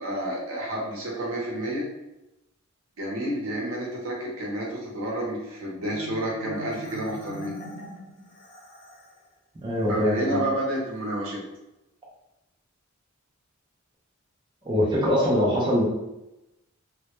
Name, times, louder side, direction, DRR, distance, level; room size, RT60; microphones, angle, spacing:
voice 1, 0.0-1.9 3.0-7.5 9.9-11.4, right 1 dB, 70° right, -3 dB, 0.7 m, -30 dB
Marimba xylophone, 5.8-9.2, right 1 dB, 50° left, 0.8 m, -43 dB
voice 2, 9.6-10.4 14.6-15.8, left 1 dB, 20° right, -5 dB, 0.4 m, -23 dB
2.1 x 2.1 x 2.9 m, 0.94 s
head